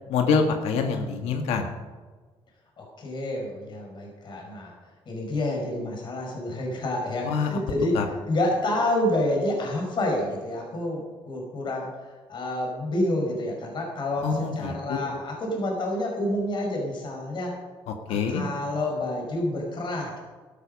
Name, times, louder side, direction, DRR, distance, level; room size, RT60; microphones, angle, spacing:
voice 1, 0.1-1.7 7.2-7.6 7.9-8.1 14.2-15.0 17.9-18.4, left 5 dB, 85° left, 4 dB, 1.7 m, -26 dB
voice 2, 2.8-4.7 5.1-8.0 8.3-11.9 12.3-17.5 18.1-20.2, left 1 dB, 50° left, 0 dB, 5.0 m, -28 dB
13.0 x 13.0 x 5.3 m, 1.4 s
cardioid pair, 95°, 10 cm